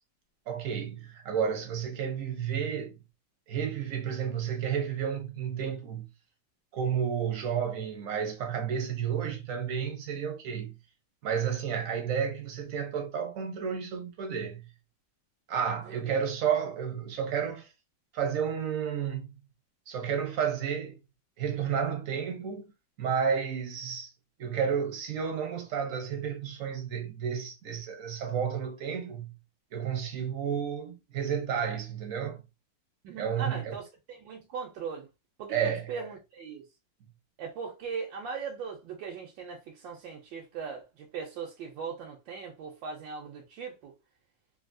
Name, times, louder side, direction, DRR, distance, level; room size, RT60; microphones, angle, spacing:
voice 1, 0.5-3.0 3.5-6.1 6.7-10.7 11.2-14.7 15.5-17.7 18.1-19.3 19.9-21.0 21.4-22.7 23.0-24.1 24.4-29.4 29.7-32.4 33.2-33.8 35.5-36.0, right 7 dB, 60° right, 0.9 m, -31 dB
voice 2, 15.9-16.2 33.0-35.1 35.4-36.6 37.4-43.9, right 5 dB, 90° right, 1.4 m, -39 dB
3.2 x 2.6 x 2.5 m
omnidirectional pair, 2.0 m